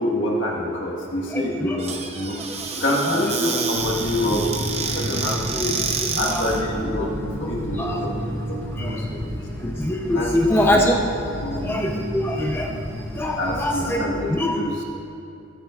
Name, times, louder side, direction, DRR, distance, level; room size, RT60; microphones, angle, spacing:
voice 1, 0.0-2.4 2.7-4.7 4.9-5.7 6.1-9.4 10.1-11.0 11.4-11.7 13.3-14.8, left 1 dB, 65° left, -2 dB, 1.5 m, -27 dB
voice 2, 1.3-1.8 3.1-3.6 5.5-5.7 6.2-6.5 7.8-8.0 8.8-9.0 9.6-11.0 11.6-12.7 13.2-14.0 14.3-14.6, left 1 dB, 10° left, 0 dB, 0.7 m, -23 dB
Squeak / Cupboard open or close, 1.8-6.6, right 5 dB, 30° right, 0.8 m, -28 dB
sound 1, 3.7-14.1, equal, 60° right, 2.1 m, -31 dB
14.5 x 12.5 x 2.4 m, 2.6 s
head